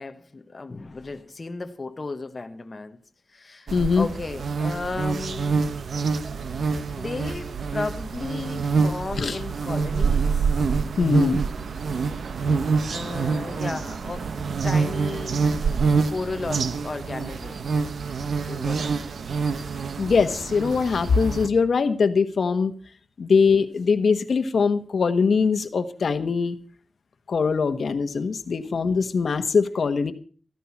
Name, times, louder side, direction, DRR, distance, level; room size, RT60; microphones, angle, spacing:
voice 1, 0.0-3.0 3.3-5.6 6.6-10.5 12.9-14.4 14.6-15.5 16.1-17.7 18.5-19.2, left 3 dB, 35° left, 1.0 m, -34 dB
voice 2, 3.7-4.1 9.2-9.4 11.0-11.5 20.0-22.7 23.2-26.6 27.3-30.1, left 5 dB, 70° left, 1.2 m, -22 dB
sound 1, 3.7-21.5, right 5 dB, 90° right, 1.0 m, -26 dB
14.5 x 14.0 x 5.8 m
wide cardioid pair, 145°, 0 cm